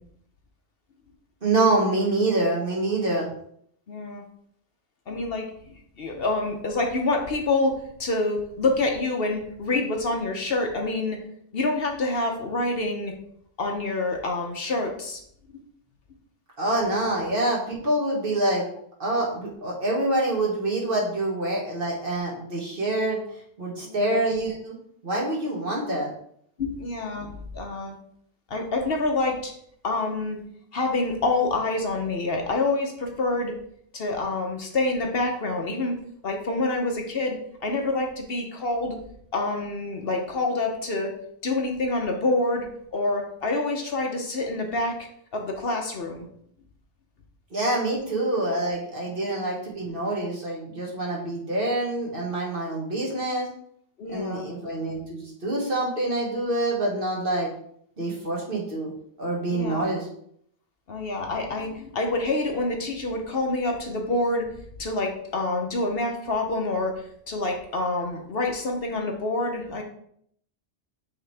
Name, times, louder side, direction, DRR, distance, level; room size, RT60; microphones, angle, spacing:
voice 1, 1.4-3.3 16.6-18.7 19.0-23.2 23.6-24.7 25.0-26.1 47.5-53.5 54.1-57.5 58.0-58.9 59.2-60.1, right 2 dB, 50° right, -3 dB, 1.7 m, -26 dB
voice 2, 3.9-4.2 5.1-5.5 6.0-11.2 11.5-13.1 13.6-15.2 15.5-15.6 23.8-24.0 26.6-27.9 28.5-29.5 29.8-30.4 30.7-33.5 33.9-39.0 39.3-41.1 41.4-42.7 42.9-46.3 54.0-54.5 59.5-59.9 60.9-64.5 64.8-69.8, left 2 dB, 55° left, 2 dB, 1.0 m, -27 dB
7.7 x 3.7 x 3.3 m, 0.68 s
omnidirectional pair, 1.2 m